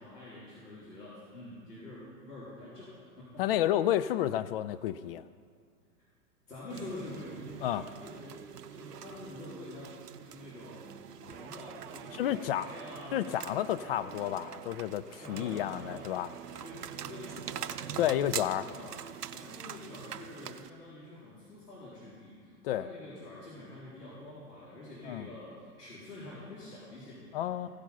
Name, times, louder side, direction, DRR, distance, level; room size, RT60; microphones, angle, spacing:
voice 1, 0.0-3.4 6.5-8.5 8.7-13.2 15.2-16.1 16.5-19.0 19.3-27.7, left 2 dB, 85° left, -8 dB, 3.8 m, -47 dB
voice 2, 3.4-5.2 7.6-7.8 12.1-12.7 13.1-16.3 18.0-18.6 22.6-22.8 25.1-25.3 27.3-27.7, left 12 dB, 40° left, 13 dB, 0.5 m, -30 dB
sound 1, 6.7-20.7, right 9 dB, 85° right, 0.7 m, -44 dB
Guitar, 11.3-19.9 20.2-20.6, right 11 dB, 35° right, 0.5 m, -50 dB
15.5 x 10.5 x 5.6 m, 2.2 s
figure-of-eight pair, 105°, 46 cm